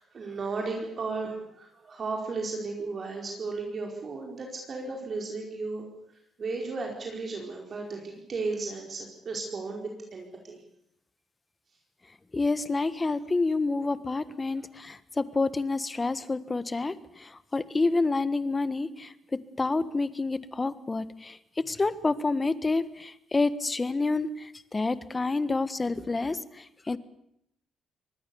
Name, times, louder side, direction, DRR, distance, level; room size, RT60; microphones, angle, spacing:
voice 1, 0.0-5.9 6.4-10.6 14.5-14.6, right 3 dB, 45° right, 1 dB, 4.7 m, -35 dB
voice 2, 12.3-16.9 17.2-19.1 19.6-21.4 21.7-24.3 24.7-26.4 26.9-27.0, left 3 dB, 25° left, 15 dB, 1.4 m, -28 dB
24.5 x 19.5 x 7.1 m, 0.76 s
cardioid pair, 90°, 0 cm